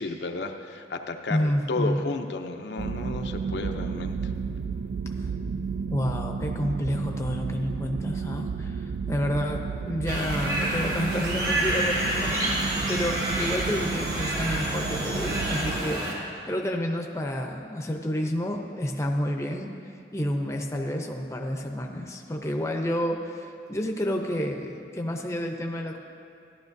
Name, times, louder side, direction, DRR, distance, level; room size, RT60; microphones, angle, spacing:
voice 1, 0.0-4.2, left 3 dB, 75° left, 5 dB, 0.6 m, -32 dB
voice 2, 1.3-2.0 5.2-5.3 5.9-16.1 16.5-19.7 20.1-26.0, equal, 15° left, 2 dB, 0.6 m, -30 dB
sound 1, 2.8-15.8, right 5 dB, 85° right, 0.3 m, -32 dB
sound 2, 10.1-16.1, right 1 dB, 50° right, 1.9 m, -29 dB
Domestic sounds home sounds, 11.1-16.2, right 2 dB, 65° right, 1.0 m, -38 dB
14.5 x 11.5 x 2.6 m, 2.6 s
head